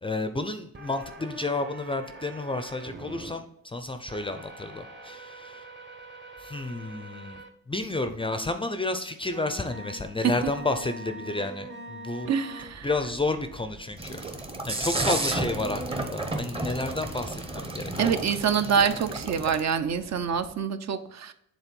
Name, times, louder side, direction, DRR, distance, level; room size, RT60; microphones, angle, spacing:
voice 1, 0.0-5.6 6.4-7.4 7.7-12.3 12.8-14.2 14.7-17.9, left 2 dB, 15° left, 9 dB, 0.4 m, -31 dB
sound 1, 0.7-3.3 4.1-7.5 8.1-8.2 9.3-20.5, right 2 dB, 35° right, 1.0 m, -45 dB
voice 2, 12.3-12.9 18.0-21.3, right 7 dB, 50° right, 10 dB, 0.6 m, -26 dB
sound 2, 14.0-19.6, right 2 dB, 15° right, 0.7 m, -32 dB
7.3 x 3.9 x 5.2 m, 0.72 s
cardioid pair, 130°, 34 cm